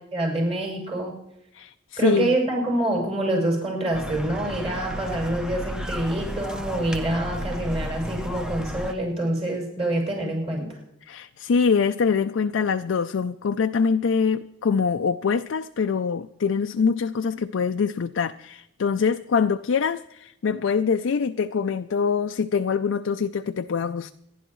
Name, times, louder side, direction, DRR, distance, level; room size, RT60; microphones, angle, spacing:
voice 1, 0.1-1.2 2.0-10.7, right 1 dB, 30° right, 6.3 m, -26 dB
voice 2, 1.5-2.3 11.0-24.1, left 5 dB, 75° left, 0.4 m, -24 dB
sound 1, 3.9-8.9, equal, 5° right, 0.7 m, -33 dB
26.5 x 11.0 x 3.1 m
head